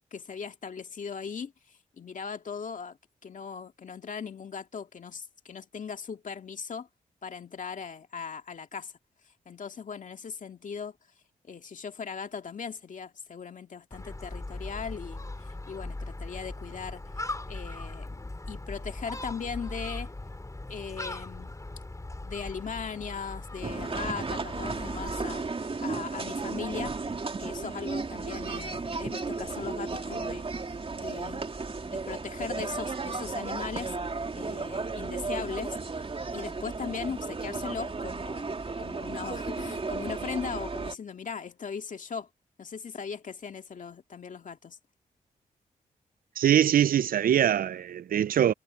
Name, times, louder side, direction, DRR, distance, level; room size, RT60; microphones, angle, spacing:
voice 1, 0.0-3.0 3.2-6.9 7.2-8.9 9.5-11.0 11.5-18.2 18.5-20.1 20.7-21.5 22.2-26.9 27.4-31.4 31.8-34.0 34.3-38.5 38.8-42.3 42.6-44.8, left 6 dB, 60° left, 2.3 m, -39 dB
Gull seagull, 13.9-25.3, left 2 dB, 20° left, 3.3 m, -39 dB
sound 1, 23.6-40.9, right 4 dB, 40° right, 2.8 m, -34 dB
voice 2, 46.4-48.5, right 10 dB, 70° right, 0.6 m, -23 dB
cardioid pair, 55°, 15 cm